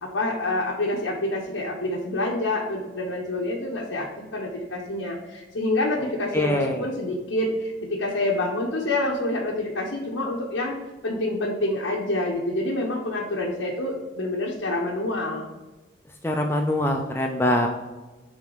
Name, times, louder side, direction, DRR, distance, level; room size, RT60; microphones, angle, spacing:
voice 1, 0.0-10.7 11.0-15.5, left 2 dB, 85° left, -3 dB, 1.1 m, -27 dB
voice 2, 6.3-6.8 16.2-17.7, left 1 dB, 10° left, 2 dB, 0.5 m, -23 dB
6.5 x 4.1 x 4.9 m, 1.2 s
head